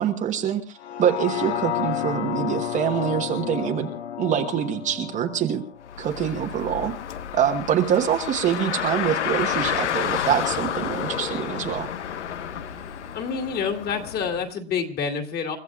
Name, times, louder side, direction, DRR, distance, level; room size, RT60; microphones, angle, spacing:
voice 1, 0.0-3.9 4.2-5.6 6.0-6.9 7.3-11.9, right 9 dB, 20° right, 3 dB, 1.2 m, -25 dB
sound 1, 0.8-6.9 7.3-7.4, left 10 dB, 70° left, 1.3 m, -31 dB
Car, 5.8-14.4, left 9 dB, 85° left, 1.2 m, -30 dB
voice 2, 13.1-15.6, left 6 dB, 30° left, 4 dB, 2.5 m, -28 dB
30.0 x 14.0 x 2.4 m, 0.34 s
hypercardioid pair, 140°, 34 cm